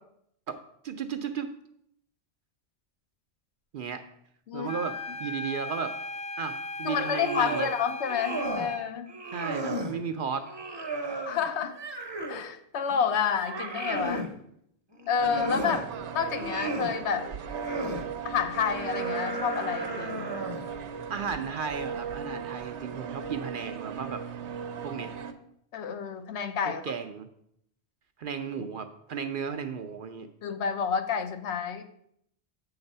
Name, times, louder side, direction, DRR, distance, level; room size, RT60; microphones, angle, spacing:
voice 1, 0.8-1.5 3.7-4.0 4.5-5.9 6.4-7.7 9.3-10.5 21.1-24.2 24.8-25.1 26.7-27.3 28.2-30.3, right 6 dB, 60° right, 8 dB, 0.6 m, -34 dB
sound 1, 4.6-8.9, left 2 dB, 40° left, 0.6 m, -37 dB
voice 2, 6.8-9.1 11.3-11.8 12.3-14.3 15.1-17.3 18.2-20.3 22.9-23.0 25.7-26.8 30.4-31.9, left 7 dB, 75° left, 8 dB, 0.9 m, -29 dB
sound 2, 6.8-7.7 8.0-8.7 9.1-10.0 10.4-12.5 12.9-14.3 15.0-15.8 16.2-17.0 17.4-18.0 18.5-20.7, right 2 dB, 25° right, 0.7 m, -35 dB
sound 3, 15.2-25.3, right 7 dB, 85° right, 0.9 m, -37 dB
7.8 x 4.0 x 5.4 m, 0.72 s
omnidirectional pair, 1.2 m